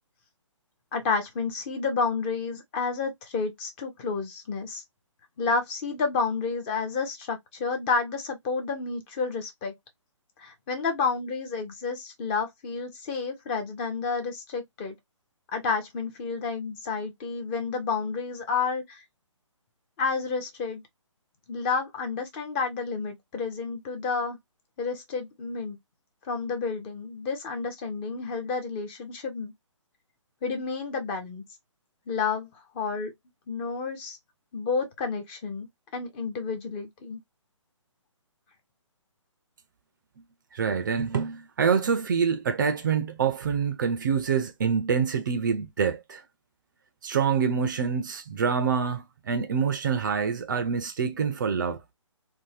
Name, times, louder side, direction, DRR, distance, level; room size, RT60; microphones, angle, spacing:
voice 1, 0.9-4.8 5.4-9.7 10.4-14.9 15.5-19.0 20.0-20.8 21.5-24.4 24.8-25.8 26.2-29.5 30.4-31.4 32.1-33.1 33.5-34.2 34.5-35.7 35.9-37.2, left 4 dB, 20° left, 0.6 m, -30 dB
voice 2, 40.5-46.2 47.0-51.8, right 6 dB, 40° right, 0.4 m, -26 dB
2.6 x 2.1 x 3.0 m
figure-of-eight pair, 140°, 16 cm